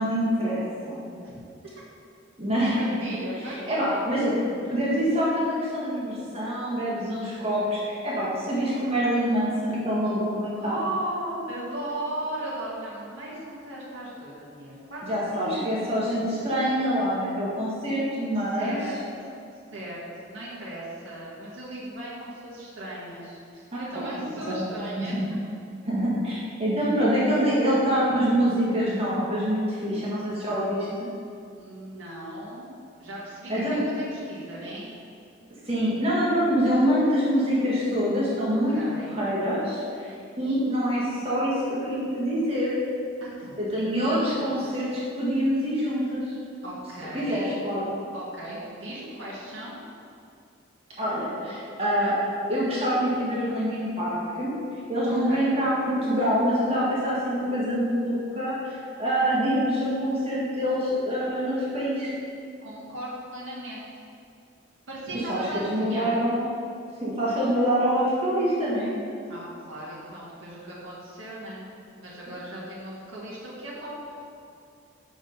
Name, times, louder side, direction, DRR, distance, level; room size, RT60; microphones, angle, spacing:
voice 1, 0.0-1.1 2.4-2.8 3.7-10.7 15.0-18.8 23.7-24.6 25.1-25.2 25.8-30.8 33.5-33.8 35.6-38.8 39.1-42.7 43.6-46.3 47.1-47.8 51.0-52.1 52.5-54.5 54.9-62.1 65.3-66.5 67.0-68.9, equal, 30° right, -7 dB, 1.5 m, -25 dB
voice 2, 2.8-4.0 10.6-15.1 15.3-15.8 18.3-18.9 19.7-20.0 20.3-25.1 31.5-32.7 33.0-34.9 38.7-39.1 43.2-43.6 44.0-44.4 46.6-47.6 48.1-49.7 55.0-55.5 62.6-63.8 64.9-66.1 69.3-71.7 72.0-73.9, right 1 dB, 75° right, -7 dB, 1.7 m, -37 dB
6.4 x 5.0 x 5.3 m, 2.5 s
head